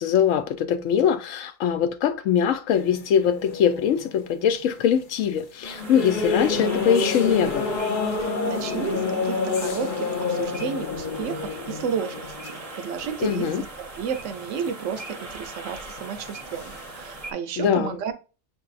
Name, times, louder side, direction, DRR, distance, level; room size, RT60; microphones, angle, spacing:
voice 1, 0.0-7.8 13.2-13.6 17.6-18.0, left 8 dB, 75° left, 0.9 m, -22 dB
sound 1, 2.7-5.2 5.6-13.9 14.1-15.5 15.7-17.2, left 4 dB, 50° left, 0.7 m, -29 dB
sound 2, 5.6-17.3, right 3 dB, 35° right, 0.7 m, -41 dB
voice 2, 8.2-13.7 13.9-18.1, right 7 dB, 70° right, 0.9 m, -32 dB
6.4 x 2.6 x 2.4 m
omnidirectional pair, 1.4 m